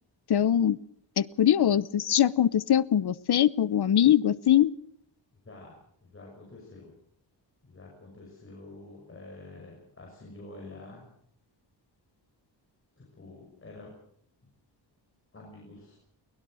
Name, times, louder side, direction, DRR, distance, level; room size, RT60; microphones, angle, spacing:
voice 1, 0.3-0.8 1.2-4.7, left 10 dB, 60° left, 18 dB, 0.9 m, -22 dB
voice 2, 5.4-6.9 7.6-11.1 13.0-13.9 15.3-16.0, left 2 dB, 30° left, -1 dB, 6.1 m, -48 dB
23.0 x 20.5 x 6.4 m, 0.66 s
wide cardioid pair, 140°, 44 cm